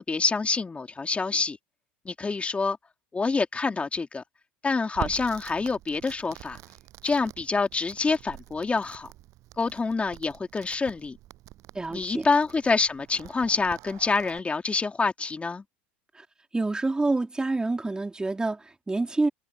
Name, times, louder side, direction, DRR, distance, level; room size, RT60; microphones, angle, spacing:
voice 1, 0.0-1.6 2.0-2.8 3.1-4.2 4.6-6.6 7.0-9.1 9.6-11.2 11.9-15.6, left 4 dB, 20° left, 3.1 m, -26 dB
Crackle, 4.9-14.4, right 16 dB, 55° right, 7.2 m, -45 dB
voice 2, 11.7-12.3 16.1-16.3 16.5-19.3, right 2 dB, 15° right, 3.5 m, -27 dB
hypercardioid pair, 80°, 6 cm